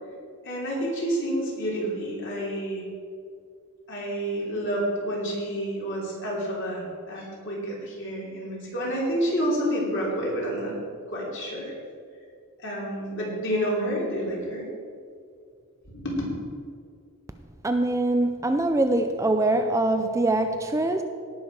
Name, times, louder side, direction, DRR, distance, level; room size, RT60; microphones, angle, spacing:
voice 1, 0.4-2.8 3.9-10.8 11.1-11.7 12.6-14.7 15.9-16.1, equal, 55° left, -4 dB, 3.1 m, -29 dB
voice 2, 17.6-21.0, right 2 dB, 15° right, 7 dB, 0.4 m, -23 dB
18.0 x 6.3 x 4.8 m, 2.3 s
head